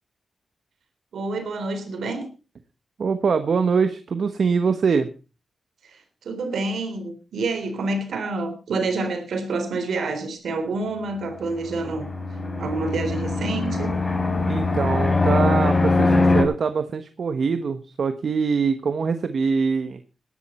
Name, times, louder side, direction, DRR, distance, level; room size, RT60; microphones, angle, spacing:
voice 1, 1.1-2.3 5.9-12.1 12.6-14.0, right 3 dB, 85° right, 8 dB, 3.6 m, -28 dB
voice 2, 3.0-5.1 14.5-20.0, right 5 dB, 65° right, 9 dB, 1.2 m, -23 dB
Fixed-wing aircraft airplane, 11.5-16.4, left 3 dB, 35° left, 4.9 m, -22 dB
19.0 x 11.5 x 4.4 m, 0.34 s
cardioid pair, 70°, 0 cm